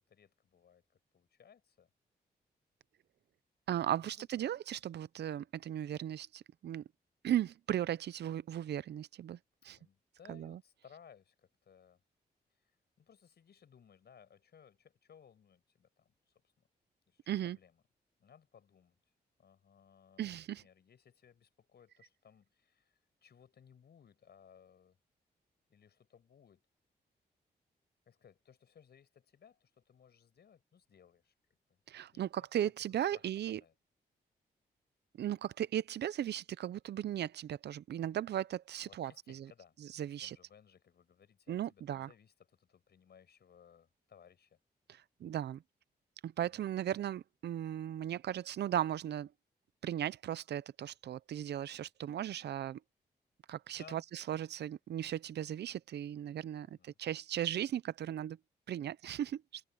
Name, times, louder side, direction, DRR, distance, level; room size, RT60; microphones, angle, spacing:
voice 1, 0.0-1.9 3.9-4.5 9.7-12.0 13.0-16.4 17.1-17.8 18.2-19.0 19.4-25.0 25.7-26.7 28.1-31.3 31.7-31.8 32.1-32.3 33.1-33.7 38.9-44.6 46.5-46.8 53.8-54.0 56.6-57.0, left 7 dB, 70° left, 5.8 m, -62 dB
voice 2, 3.7-6.8 7.2-9.4 9.6-9.8 10.3-10.6 17.3-17.6 20.2-20.6 31.9-33.6 35.2-39.5 39.9-40.4 41.5-42.1 44.9-45.6 46.2-49.3 49.8-52.8 53.5-58.4 58.7-59.6, right 11 dB, 75° right, 0.6 m, -37 dB
cardioid pair, 60°, 18 cm